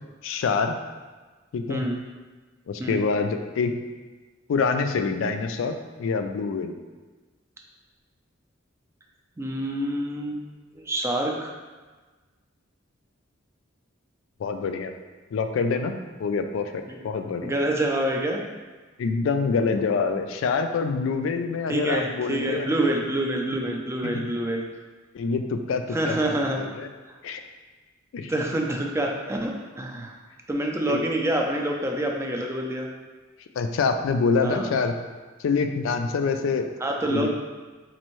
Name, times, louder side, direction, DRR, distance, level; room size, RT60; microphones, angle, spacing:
voice 1, 0.2-0.7 1.5-1.8 2.7-3.7 4.5-5.7 6.0-6.7 14.4-14.9 15.3-15.9 16.2-17.5 19.0-22.7 24.1-24.3 25.1-26.9 27.2-27.4 28.1-28.3 30.9-31.0 33.6-34.9 35.4-36.7 37.1-37.3, left 4 dB, 75° left, 6 dB, 0.3 m, -26 dB
voice 2, 9.4-10.4 10.7-11.5 16.9-17.0 17.4-18.4 21.7-24.7 25.9-26.6 28.3-30.1 30.5-32.9 34.4-34.8 36.8-37.3, right 1 dB, 15° right, 1 dB, 0.3 m, -27 dB
4.2 x 2.6 x 3.0 m, 1.3 s
head